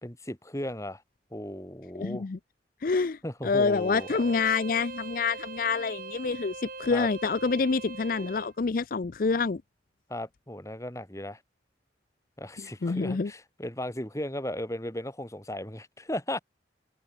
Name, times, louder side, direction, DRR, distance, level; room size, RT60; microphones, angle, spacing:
voice 1, 0.0-1.0 1.3-2.3 3.2-4.2 6.9-7.1 10.1-11.4 12.4-16.4, left 1 dB, 15° left, 3.2 m, -36 dB
voice 2, 1.9-2.4 2.8-9.6 12.6-13.3, left 4 dB, 50° left, 0.5 m, -27 dB
Bowed string instrument, 3.7-8.5, right 3 dB, 50° right, 3.2 m, -41 dB
head